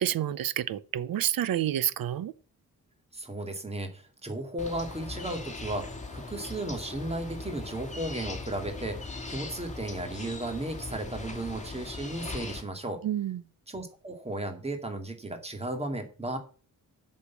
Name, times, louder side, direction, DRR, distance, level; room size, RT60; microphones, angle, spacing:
voice 1, 0.0-2.3 13.0-13.4, right 11 dB, 90° right, 0.8 m, -29 dB
voice 2, 3.1-13.0 13.7-16.4, right 1 dB, 20° right, 2.3 m, -35 dB
sound 1, 4.6-12.6, left 3 dB, 20° left, 2.5 m, -39 dB
8.4 x 6.8 x 7.1 m
wide cardioid pair, 120°, 34 cm